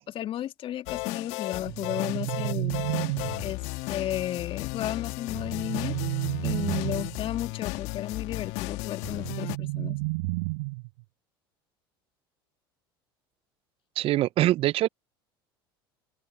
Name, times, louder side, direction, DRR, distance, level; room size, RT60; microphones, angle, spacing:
voice 1, 0.1-2.8 3.4-3.6 3.9-5.9 6.4-10.0, left 12 dB, 45° left, 2.1 m, -33 dB
sound 1, 0.9-9.6, left 23 dB, 65° left, 1.7 m, -35 dB
sound 2, 1.7-3.7 5.3-7.2 9.0-11.0, right 26 dB, 70° right, 4.4 m, -31 dB
voice 2, 14.0-14.9, right 15 dB, 50° right, 0.7 m, -23 dB
open air
hypercardioid pair, 75°, 12 cm